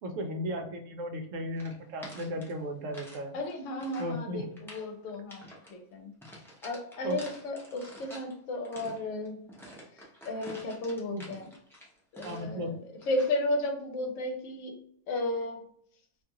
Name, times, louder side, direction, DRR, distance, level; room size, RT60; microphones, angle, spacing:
voice 1, 0.0-3.4 4.0-4.5 7.0-7.2 11.1-11.3 12.2-12.8, equal, 70° right, 5 dB, 0.9 m, -35 dB
sound 1, 1.6-3.2 3.5-4.2 4.5-4.9 5.3-5.7 6.2-8.3 8.6-12.6 13.0-13.4, equal, 5° left, 0.4 m, -49 dB
voice 2, 3.3-6.1 6.6-9.4 10.2-11.5 12.1-12.7 13.1-14.7 15.1-15.6, left 1 dB, 70° left, 4 dB, 1.0 m, -33 dB
2.5 x 2.4 x 2.8 m, 0.67 s
omnidirectional pair, 1.5 m